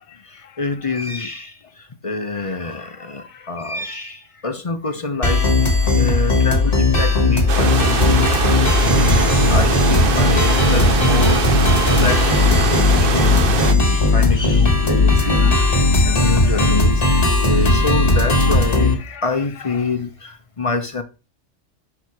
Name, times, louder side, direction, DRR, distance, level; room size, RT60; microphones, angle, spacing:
voice 1, 0.3-8.3 8.8-11.7 12.0-18.9 19.2-21.0, left 3 dB, 35° left, 0.7 m, -26 dB
sound 1, 5.2-19.0, left 2 dB, 50° left, 1.6 m, -16 dB
voice 2, 5.8-6.4 7.6-9.0 10.1-10.7 15.2-16.8 18.2-19.2 19.7-19.9, left 9 dB, 80° left, 1.0 m, -41 dB
sound 2, 7.5-13.7, right 5 dB, 55° right, 1.0 m, -22 dB
6.1 x 4.5 x 4.6 m
omnidirectional pair, 1.2 m